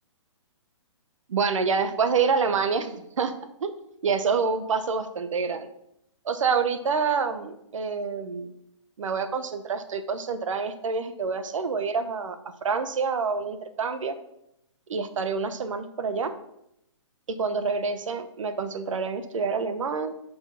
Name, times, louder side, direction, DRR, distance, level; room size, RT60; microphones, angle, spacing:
voice 1, 1.3-3.3 3.6-3.7 4.0-5.7 6.2-8.5 9.0-12.4 12.6-14.1 14.9-16.3 17.3-20.1, right 5 dB, 80° right, 10 dB, 0.8 m, -27 dB
5.2 x 4.7 x 5.6 m, 0.80 s
hypercardioid pair, 175°, 16 cm